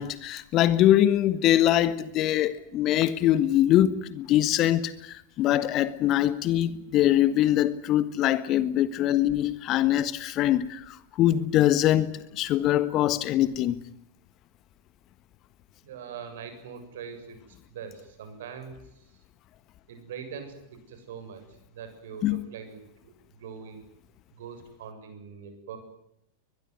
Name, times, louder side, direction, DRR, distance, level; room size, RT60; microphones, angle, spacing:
voice 1, 0.0-12.1 12.3-13.8 22.2-22.4, left 12 dB, 35° left, 1.5 m, -23 dB
voice 2, 15.8-18.7 19.9-20.6 20.9-21.4 21.7-23.1 23.4-23.8 24.4-25.8, right 7 dB, 55° right, 7.1 m, -42 dB
23.0 x 21.5 x 9.6 m
figure-of-eight pair, 90°, 0 cm